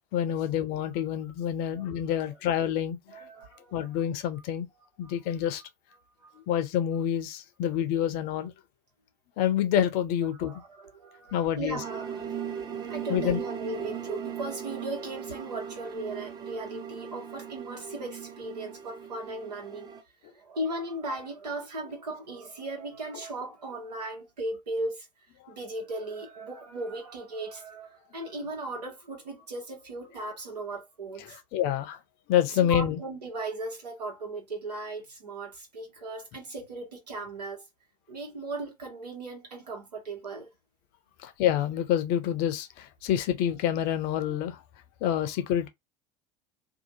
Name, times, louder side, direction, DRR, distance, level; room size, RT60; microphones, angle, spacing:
voice 1, 0.1-3.0 3.7-4.7 5.0-5.6 6.5-8.5 9.4-10.6 11.3-11.8 13.1-13.4 31.3-32.0 32.3-33.0 41.2-44.6 45.0-45.7, left 10 dB, 50° left, 0.6 m, -27 dB
voice 2, 1.7-2.2 3.1-4.0 5.0-5.1 6.2-6.4 10.4-19.9 20.3-25.1 25.5-31.4 32.6-37.6 38.1-40.5, right 2 dB, 80° right, 1.3 m, -37 dB
sound 1, 11.7-20.0, right 8 dB, 20° right, 0.7 m, -38 dB
2.7 x 2.4 x 2.8 m
figure-of-eight pair, 75°, 20 cm